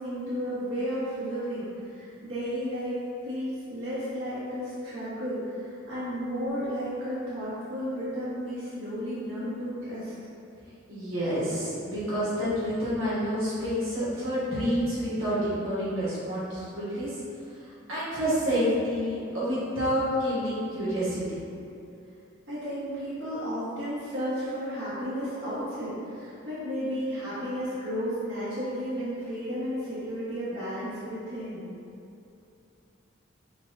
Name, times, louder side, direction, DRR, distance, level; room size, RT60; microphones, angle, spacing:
voice 1, 0.0-3.0 3.2-10.1 22.5-31.7, equal, 60° right, -12 dB, 1.1 m, -33 dB
voice 2, 10.9-17.2 17.6-21.4, equal, 90° right, -10 dB, 1.3 m, -28 dB
5.9 x 2.3 x 2.6 m, 2.7 s
head